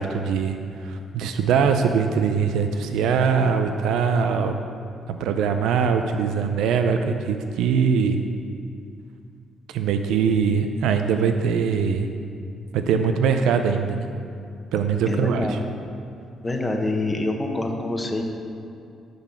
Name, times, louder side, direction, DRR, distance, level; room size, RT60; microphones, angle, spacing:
voice 1, 0.0-4.6 5.1-8.2 9.7-12.1 12.7-14.1 14.7-15.6, right 6 dB, 85° right, 7 dB, 0.5 m, -22 dB
voice 2, 15.0-15.6 16.4-18.2, left 2 dB, 20° left, 2 dB, 1.1 m, -26 dB
10.0 x 4.0 x 6.9 m, 2.5 s
cardioid pair, 90°, 0 cm